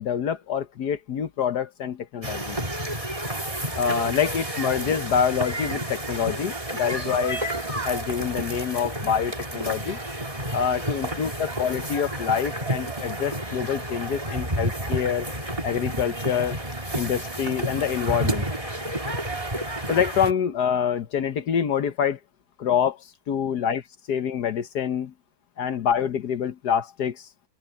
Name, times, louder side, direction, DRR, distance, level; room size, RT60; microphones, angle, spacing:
voice 1, 0.0-2.6 3.7-7.4 7.8-10.0 10.5-15.3 15.6-16.6 16.9-18.5 19.9-22.2 22.6-23.8 24.1-25.1 25.6-27.3, left 8 dB, 55° left, 1.3 m, -26 dB
sound 1, 2.2-20.3, right 1 dB, 15° right, 3.0 m, -30 dB
omnidirectional pair, 2.4 m